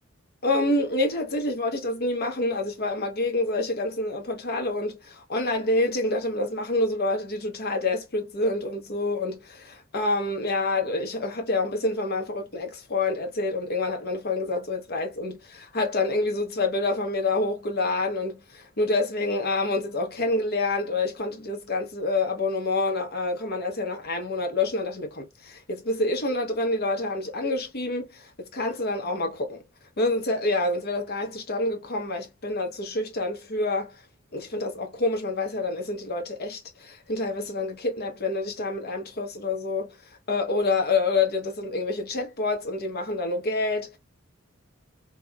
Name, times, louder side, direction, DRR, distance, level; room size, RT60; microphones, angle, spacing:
voice 1, 0.4-29.6 30.0-33.9 34.3-39.9 40.3-43.9, left 2 dB, 50° left, 0.8 m, -27 dB
2.8 x 2.3 x 2.2 m
head